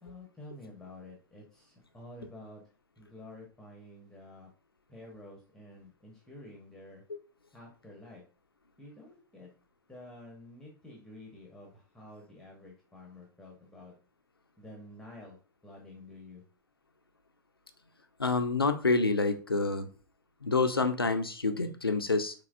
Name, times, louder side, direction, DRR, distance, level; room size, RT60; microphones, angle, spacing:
voice 1, 0.0-2.6 3.0-4.5 4.9-7.0 7.5-8.2 8.8-9.5 9.9-13.9 14.6-15.4 15.6-16.4, left 1 dB, 5° left, -1 dB, 1.1 m, -50 dB
voice 2, 18.2-19.9 20.4-22.3, left 3 dB, 90° left, 8 dB, 0.6 m, -27 dB
6.0 x 2.3 x 2.5 m, 0.36 s
figure-of-eight pair, 100°, 12 cm